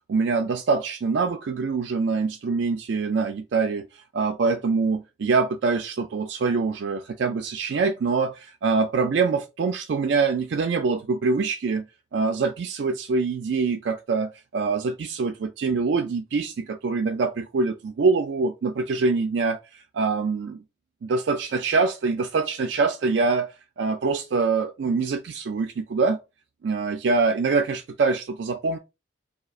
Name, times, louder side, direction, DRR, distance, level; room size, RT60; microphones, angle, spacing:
voice 1, 0.1-3.9 4.1-11.8 12.1-20.6 21.0-23.5 23.8-26.2 26.6-28.8, right 4 dB, 65° right, 0.3 m, -24 dB
2.6 x 2.4 x 4.0 m
head